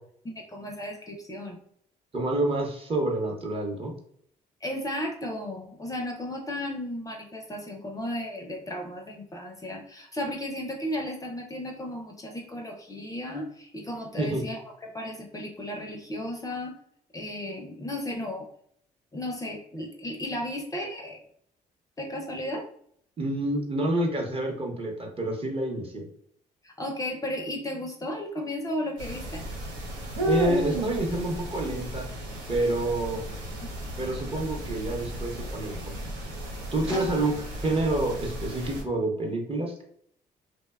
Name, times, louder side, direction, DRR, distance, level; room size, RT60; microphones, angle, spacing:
voice 1, 0.2-1.6 4.6-16.8 17.1-18.5 19.1-21.2 22.0-22.7 26.6-29.5 36.9-37.1, left 1 dB, 20° left, 2 dB, 0.4 m, -34 dB
voice 2, 2.1-3.9 14.2-14.4 23.2-26.0 30.2-32.1 32.5-33.2 34.0-35.8 36.7-37.3 37.6-39.8, right 2 dB, 35° right, 1 dB, 0.7 m, -28 dB
sound 1, 29.0-38.8, right 1 dB, 85° right, 0.6 m, -34 dB
2.7 x 2.1 x 2.2 m, 0.65 s
supercardioid pair, 60°, 17 cm